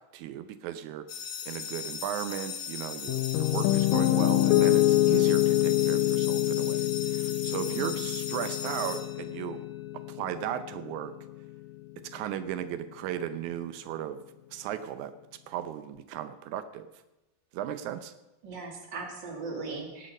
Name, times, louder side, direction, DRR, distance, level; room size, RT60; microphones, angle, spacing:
voice 1, 0.1-1.1 1.5-9.6 10.1-11.1 12.0-14.2 14.5-15.1 15.5-16.9 17.5-18.1, right 10 dB, 90° right, 11 dB, 2.2 m, -36 dB
sound 1, 1.1-9.8, left 7 dB, 45° left, 1.7 m, -38 dB
Piano, 3.1-11.2, left 15 dB, 80° left, 1.9 m, -26 dB
voice 2, 7.7-8.1 18.4-20.1, right 4 dB, 40° right, 2 dB, 3.0 m, -39 dB
17.5 x 10.5 x 5.3 m, 1.0 s
omnidirectional pair, 3.3 m